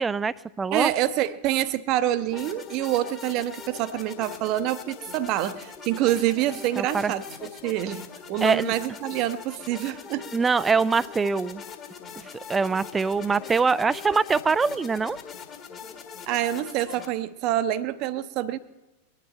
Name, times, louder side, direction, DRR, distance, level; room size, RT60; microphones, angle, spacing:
voice 1, 0.0-0.9 6.8-7.1 8.4-8.7 10.3-11.6 12.2-15.2, right 5 dB, 15° right, 20 dB, 0.3 m, -23 dB
voice 2, 0.7-10.3 16.3-18.6, right 13 dB, 40° right, 14 dB, 0.7 m, -26 dB
sound 1, 2.3-17.1, left 7 dB, 25° left, 1.7 m, -42 dB
21.0 x 10.5 x 4.4 m, 1.1 s
figure-of-eight pair, 90°, 0 cm